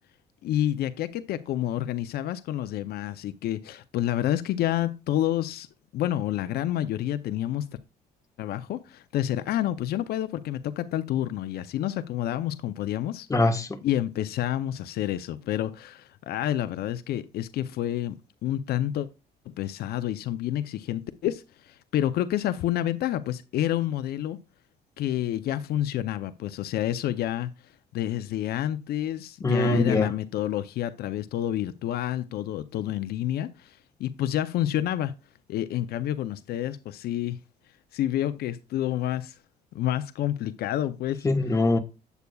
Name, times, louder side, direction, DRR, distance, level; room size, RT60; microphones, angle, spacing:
voice 1, 0.4-5.7 5.9-7.7 8.4-13.3 13.8-18.2 18.4-19.1 19.6-24.4 25.0-27.5 27.9-35.1 35.5-37.4 37.9-39.4 39.7-41.6, left 12 dB, 65° left, 0.6 m, -29 dB
voice 2, 13.3-13.8 29.4-30.1 41.2-41.8, left 2 dB, 20° left, 1.3 m, -23 dB
8.2 x 8.1 x 2.3 m
cardioid pair, 110°, 17 cm